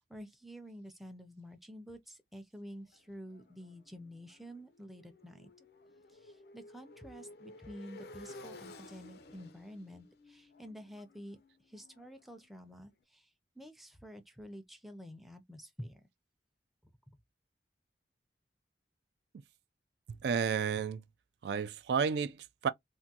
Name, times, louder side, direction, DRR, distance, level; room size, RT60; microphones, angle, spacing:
voice 1, 0.0-5.7 6.1-11.4 11.7-13.3 13.6-16.0 17.1-17.2, equal, ahead, 0.4 m, -49 dB
Motorcycle, 2.9-12.8, left 2 dB, 60° left, 0.4 m, -54 dB
voice 2, 20.2-21.0 21.4-22.7, right 6 dB, 70° right, 0.3 m, -31 dB
3.5 x 2.2 x 2.7 m
head